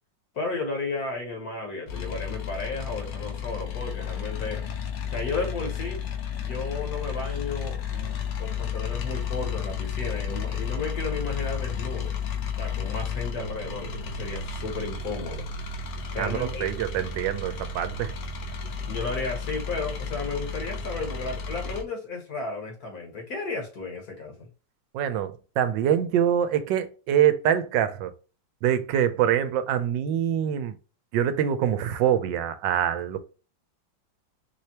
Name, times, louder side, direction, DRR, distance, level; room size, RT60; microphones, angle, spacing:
voice 1, 0.3-4.6 5.1-6.0 6.3-12.2 12.6-15.5 16.1-16.7 18.9-24.5, left 3 dB, 55° left, 1.6 m, -33 dB
sound 1, 1.9-21.8, left 6 dB, 75° left, 1.5 m, -32 dB
voice 2, 16.2-18.1 24.9-28.1 28.6-30.8 31.1-33.2, right 10 dB, 75° right, 1.2 m, -25 dB
4.6 x 3.3 x 2.8 m
omnidirectional pair, 2.0 m